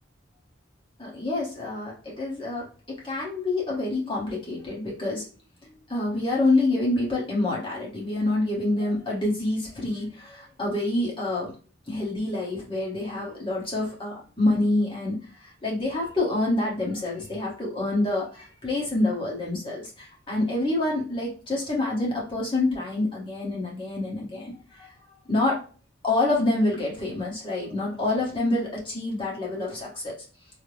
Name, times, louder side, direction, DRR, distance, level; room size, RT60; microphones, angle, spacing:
voice 1, 1.0-5.3 5.9-11.5 11.9-24.9 25.3-25.6 26.0-30.1, left 2 dB, 25° left, -5 dB, 1.2 m, -27 dB
3.3 x 2.1 x 3.2 m, 0.38 s
head